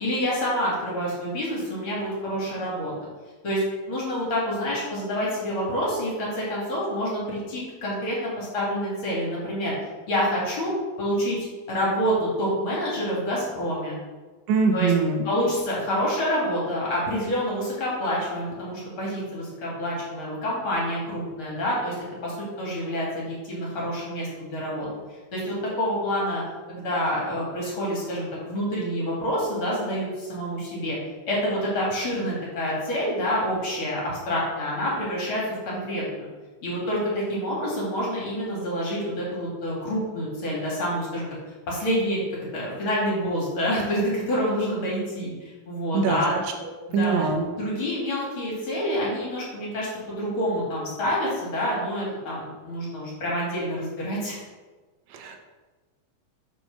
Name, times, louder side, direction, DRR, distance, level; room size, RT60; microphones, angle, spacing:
voice 1, 0.0-2.9 3.4-3.6 3.9-9.7 10.1-10.7 11.0-11.4 11.7-14.0 14.7-14.9 15.2-21.9 22.2-24.9 25.3-26.4 26.7-31.0 31.3-36.3 36.6-41.3 41.7-42.2 42.5-46.3 46.9-47.3 47.6-54.4, equal, 50° left, -5 dB, 2.4 m, -27 dB
voice 2, 14.5-15.2 45.9-47.4 55.1-55.4, right 4 dB, 75° right, 3 dB, 1.9 m, -24 dB
5.3 x 4.5 x 5.6 m, 1.3 s
omnidirectional pair, 3.4 m